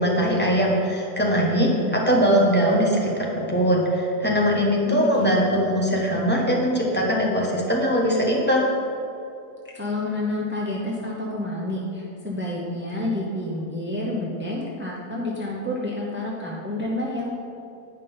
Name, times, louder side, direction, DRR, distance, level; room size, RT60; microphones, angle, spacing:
voice 1, 0.0-8.6, equal, 10° left, -4 dB, 1.1 m, -21 dB
voice 2, 4.9-5.3 9.7-17.3, left 1 dB, 10° right, -5 dB, 0.5 m, -29 dB
9.1 x 5.3 x 5.5 m, 2.6 s
omnidirectional pair, 1.6 m